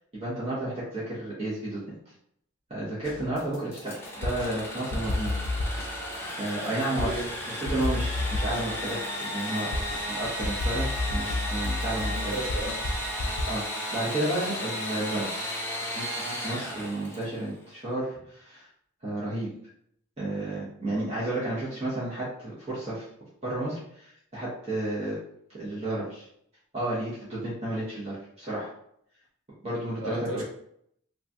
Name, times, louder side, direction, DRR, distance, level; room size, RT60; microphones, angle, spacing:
voice 1, 0.2-1.8 2.7-5.5 6.4-7.1 7.5-9.7 10.1-12.4 13.5-13.6 13.9-15.5 16.0-18.7 19.0-19.5 20.2-23.1 23.4-25.2 25.5-26.2 26.7-28.7 29.6-30.4, right 1 dB, 30° right, -9 dB, 0.8 m, -32 dB
sound 1, 3.0-4.5 4.9-7.3 7.7-13.4, left 2 dB, 75° left, 0.4 m, -31 dB
Engine / Sawing, 3.7-17.4, equal, 10° left, 0.4 m, -34 dB
voice 2, 12.1-12.8 30.0-30.4, right 1 dB, 80° right, -4 dB, 1.1 m, -34 dB
3.0 x 2.3 x 2.6 m, 0.71 s
head